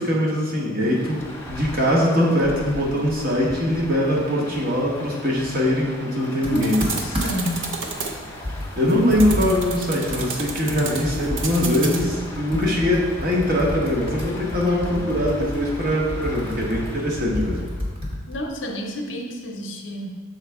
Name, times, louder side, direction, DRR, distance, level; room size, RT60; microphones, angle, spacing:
voice 1, 0.0-6.8 8.7-17.6, left 1 dB, 45° right, -3 dB, 1.2 m, -22 dB
Rain, 0.8-17.8, left 1 dB, 10° left, 0.6 m, -39 dB
voice 2, 6.4-7.7 9.2-9.6 18.3-20.2, equal, 65° left, 2 dB, 0.6 m, -30 dB
Computer keyboard, 6.4-7.6 8.0-8.1 8.4-11.7 12.0-18.5, left 1 dB, 25° right, 1.0 m, -31 dB
sound 1, 6.6-12.0, right 4 dB, 65° right, 0.6 m, -32 dB
6.5 x 4.4 x 3.5 m, 1.5 s
head